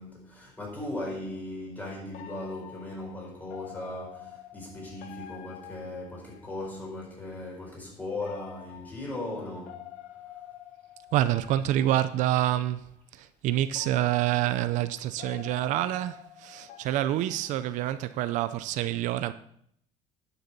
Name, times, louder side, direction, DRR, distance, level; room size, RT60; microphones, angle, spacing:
voice 1, 0.0-9.9, left 2 dB, 15° left, 4.7 m, -38 dB
sound 1, 0.6-0.8 2.1-6.9 8.1-12.4 13.2-13.3 13.7-18.1 18.5-18.8, left 11 dB, 80° left, 1.1 m, -48 dB
voice 2, 11.1-12.8 13.1-19.3, right 13 dB, 70° right, 0.6 m, -27 dB
11.5 x 6.8 x 5.4 m
cardioid pair, 130°, 13 cm